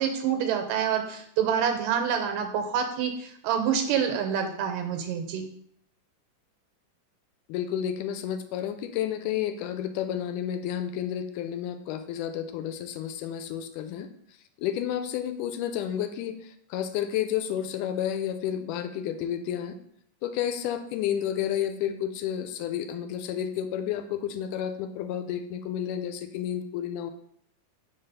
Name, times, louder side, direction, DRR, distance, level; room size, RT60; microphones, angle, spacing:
voice 1, 0.0-5.4, right 8 dB, 85° right, 5 dB, 2.5 m, -27 dB
voice 2, 7.5-14.1 14.6-19.8 20.2-27.1, left 10 dB, 80° left, 8 dB, 2.0 m, -31 dB
5.0 x 4.0 x 5.5 m, 0.69 s
omnidirectional pair, 3.7 m